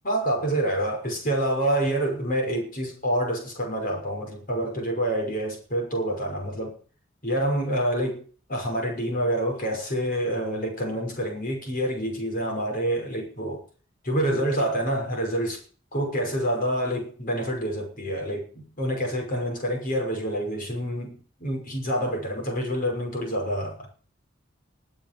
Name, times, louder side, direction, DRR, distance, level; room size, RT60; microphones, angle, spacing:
voice 1, 0.0-6.8 7.2-13.6 14.0-15.6 15.9-23.9, right 1 dB, 45° left, 6.1 m, -27 dB
20.5 x 7.7 x 7.0 m
head